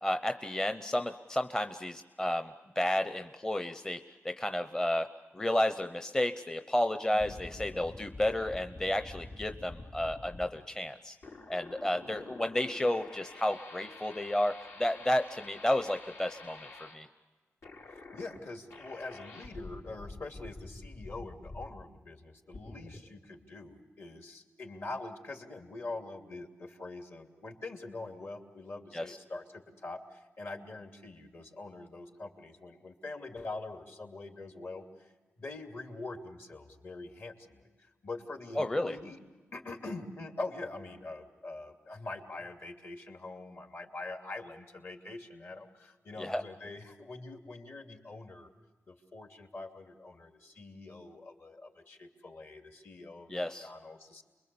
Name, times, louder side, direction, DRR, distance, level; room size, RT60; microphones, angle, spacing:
voice 1, 0.0-4.0 4.2-5.1 5.3-11.2 11.5-14.5 14.8-16.6 16.9-17.1 28.9-29.2 38.6-39.0 46.2-46.4 53.3-53.7, left 1 dB, 15° left, 8 dB, 0.7 m, -31 dB
voice 2, 7.1-7.9 12.1-12.2 18.1-34.8 35.4-37.6 38.0-39.2 39.5-48.5 48.9-54.2, left 2 dB, 55° left, 4 dB, 2.7 m, -44 dB
sound 1, 7.2-10.5 11.2-17.0 17.6-18.4 18.7-21.8 22.5-23.0, left 2 dB, 75° left, 4.6 m, -48 dB
29.0 x 22.0 x 7.0 m, 1.3 s
wide cardioid pair, 115°, 5 cm